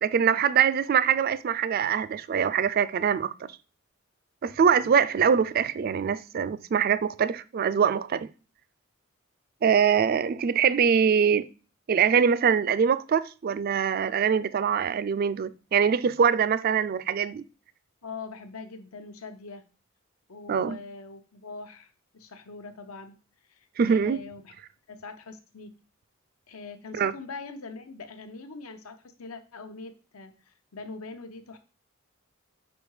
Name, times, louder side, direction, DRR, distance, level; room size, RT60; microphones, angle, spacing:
voice 1, 0.0-3.5 4.4-8.3 9.6-11.5 11.9-17.4 20.5-20.8 23.8-24.2 26.9-27.1, right 7 dB, 45° right, 0.3 m, -23 dB
voice 2, 18.0-19.6 20.3-23.1 23.5-24.5 24.9-25.7 26.5-31.6, left 4 dB, 85° left, 0.8 m, -42 dB
5.2 x 4.5 x 4.7 m
head